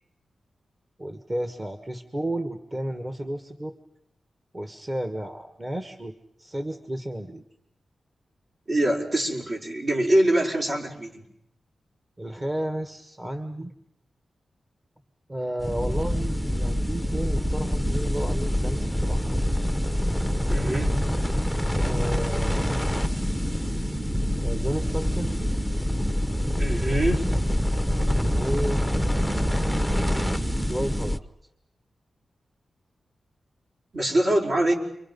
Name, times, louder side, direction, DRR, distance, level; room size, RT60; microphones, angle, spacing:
voice 1, 1.0-3.7 4.5-7.4 12.2-13.7 15.3-19.3 21.8-22.7 24.4-25.3 28.3-28.9 30.7-31.2, right 1 dB, 25° right, 7 dB, 1.6 m, -32 dB
voice 2, 8.7-11.2 20.5-20.9 26.6-27.3 33.9-34.7, right 1 dB, 55° right, -1 dB, 5.3 m, -24 dB
sound 1, 15.6-31.2, equal, 5° right, 0.9 m, -25 dB
30.0 x 24.5 x 5.5 m, 0.78 s
cardioid pair, 80°, 0 cm